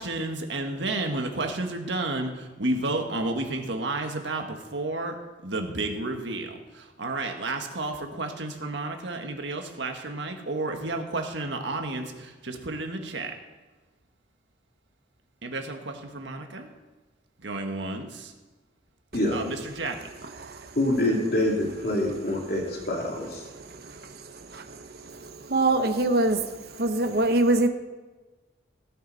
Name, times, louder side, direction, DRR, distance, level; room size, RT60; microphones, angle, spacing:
voice 1, 0.0-5.1 5.4-13.3 15.4-16.7 17.4-18.3 19.3-20.1, right 2 dB, 80° right, 4 dB, 1.6 m, -31 dB
voice 2, 20.7-23.4, left 1 dB, 55° left, -1 dB, 2.9 m, -26 dB
voice 3, 25.5-26.4 26.8-27.7, right 2 dB, 55° right, 7 dB, 1.0 m, -22 dB
17.0 x 9.7 x 4.1 m, 1.2 s
head